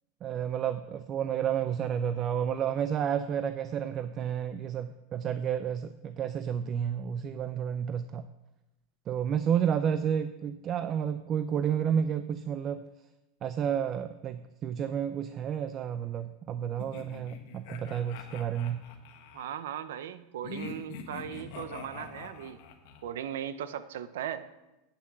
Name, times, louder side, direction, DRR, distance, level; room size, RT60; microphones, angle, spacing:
voice 1, 0.2-8.3 9.1-12.8 13.4-18.9, right 8 dB, 30° right, 12 dB, 0.4 m, -31 dB
sound 1, 16.8-19.5 20.4-23.0, left 6 dB, 55° left, 1.5 m, -44 dB
voice 2, 19.3-22.6 23.0-24.4, right 10 dB, 85° right, 13 dB, 0.8 m, -38 dB
8.5 x 7.2 x 7.5 m, 1.0 s
supercardioid pair, 155°, 0 cm